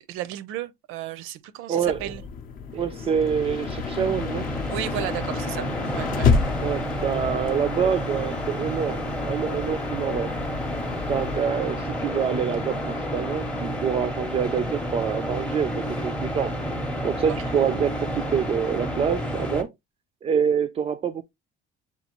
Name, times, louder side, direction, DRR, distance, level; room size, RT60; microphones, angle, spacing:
voice 1, 0.0-2.2 4.7-5.7 5.9-6.3 17.3-17.4, right 13 dB, 80° right, 0.6 m, -33 dB
voice 2, 1.7-2.1 2.7-4.5 6.6-10.3 11.1-16.5 17.0-19.7 20.2-21.2, right 7 dB, 30° right, 0.3 m, -26 dB
sound 1, 1.8-11.4, left 5 dB, 40° left, 0.6 m, -30 dB
sound 2, 3.0-19.6, equal, 5° left, 0.7 m, -30 dB
sound 3, 4.8-13.6, left 9 dB, 80° left, 0.8 m, -41 dB
6.8 x 2.4 x 2.9 m
cardioid pair, 165°, 21 cm